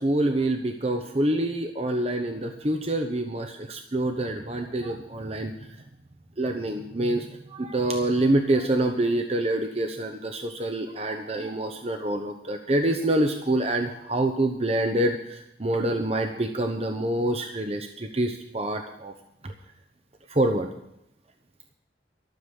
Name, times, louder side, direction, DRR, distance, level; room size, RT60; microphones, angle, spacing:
voice 1, 0.0-5.5 6.4-19.1 19.4-19.5 20.3-20.7, right 1 dB, 35° right, 5 dB, 0.9 m, -26 dB
13.0 x 7.0 x 9.8 m, 0.83 s
head